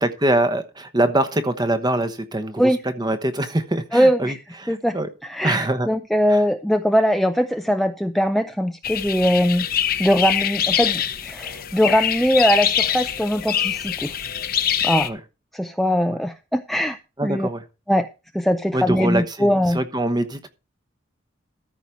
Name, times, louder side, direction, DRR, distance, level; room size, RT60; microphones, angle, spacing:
voice 1, 0.0-5.1 5.4-5.9 6.3-6.4 15.0-15.2 16.1-16.2 17.2-17.7 18.7-20.5, right 1 dB, 20° right, 1.0 m, -24 dB
voice 2, 3.9-4.4 4.7-5.0 5.3-9.7 10.0-14.1 14.8-15.1 15.5-17.0 17.2-17.5 17.9-18.1 18.3-19.8, equal, ahead, 0.4 m, -21 dB
sound 1, 8.8-15.1, left 9 dB, 45° left, 0.8 m, -24 dB
13.5 x 5.0 x 5.6 m
head